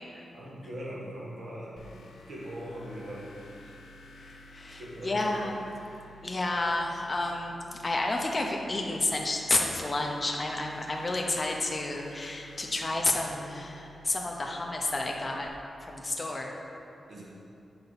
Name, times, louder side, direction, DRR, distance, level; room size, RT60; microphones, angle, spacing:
voice 1, 0.3-3.7 4.7-5.2 17.1-17.2, equal, 70° right, -6 dB, 1.6 m, -41 dB
sound 1, 1.8-15.5, left 1 dB, 75° left, 0.7 m, -52 dB
voice 2, 4.2-5.6 6.2-15.5 15.8-16.6, left 2 dB, 25° left, 1 dB, 0.6 m, -31 dB
7.2 x 5.5 x 4.0 m, 2.7 s
wide cardioid pair, 180°, 0 cm